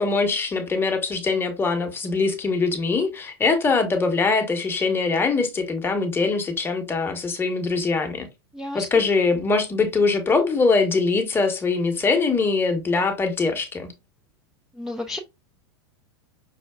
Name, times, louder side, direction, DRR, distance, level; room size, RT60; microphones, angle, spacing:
voice 1, 0.0-8.3 8.7-13.9, left 4 dB, 15° left, 0.8 m, -22 dB
voice 2, 8.5-9.1 14.7-15.2, left 2 dB, ahead, 0.4 m, -32 dB
5.5 x 2.2 x 2.2 m
hypercardioid pair, 120°, 14 cm